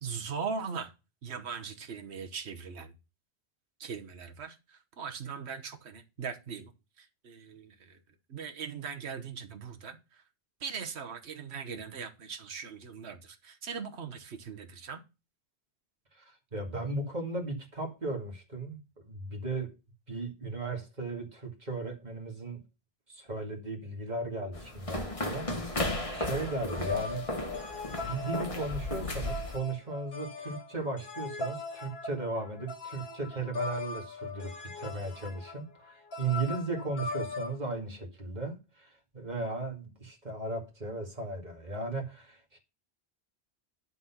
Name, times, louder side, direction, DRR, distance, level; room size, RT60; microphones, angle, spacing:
voice 1, 0.0-0.9 1.2-2.9 3.8-6.7 7.0-8.0 8.3-10.2 10.6-15.0, right 6 dB, 75° right, 1.4 m, -40 dB
voice 2, 16.1-19.7 20.1-22.6 23.1-27.5 28.0-42.6, right 3 dB, 40° right, 2.3 m, -36 dB
sound 1, 24.5-29.6, left 1 dB, 30° left, 1.5 m, -35 dB
sound 2, 26.5-37.6, left 4 dB, 60° left, 1.6 m, -39 dB
10.5 x 4.0 x 5.8 m
omnidirectional pair, 1.1 m